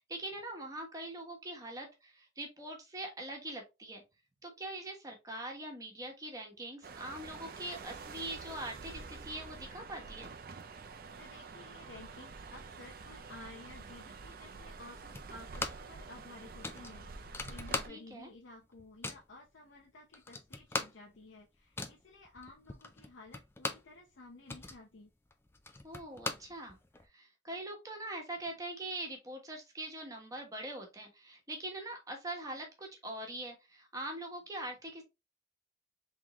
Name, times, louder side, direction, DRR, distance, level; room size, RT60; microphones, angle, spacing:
voice 1, 0.0-4.0 4.4-10.3 17.9-18.3 25.8-26.8 27.1-35.0, right 1 dB, 20° right, 1 dB, 1.2 m, -43 dB
sound 1, 6.8-17.9, right 4 dB, 50° right, 0.5 m, -48 dB
voice 2, 11.2-25.1, left 2 dB, 80° left, 0 dB, 0.8 m, -54 dB
sound 2, 15.1-16.0 16.2-16.3 16.6-18.3 18.6-19.3 19.8-19.9 20.1-24.0 24.3-27.1, left 3 dB, 15° left, 0.4 m, -40 dB
3.7 x 3.6 x 3.0 m, 0.24 s
head